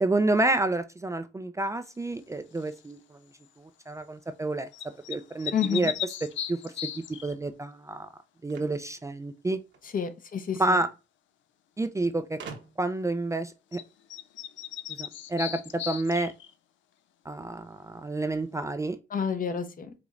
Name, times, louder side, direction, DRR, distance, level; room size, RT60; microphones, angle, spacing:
voice 1, 0.0-3.2 3.6-4.7 5.1-5.9 6.5-6.7 7.2-8.1 8.4-9.6 10.6-10.9 11.8-12.4 12.8-13.8 14.9-16.3 17.3-19.0, right 2 dB, 15° right, 0.4 m, -29 dB
sound 1, 2.6-2.9 4.7-7.3 13.7-13.8 14.1-16.5, left 10 dB, 70° left, 0.5 m, -37 dB
voice 2, 5.5-5.9 9.9-10.8 19.1-19.9, left 7 dB, 45° left, 0.8 m, -29 dB
sound 2, 8.5-9.9 11.0-11.1 11.3-11.4 12.4-13.0, right 5 dB, 65° right, 1.1 m, -45 dB
5.0 x 3.0 x 2.5 m
cardioid pair, 90°, 20 cm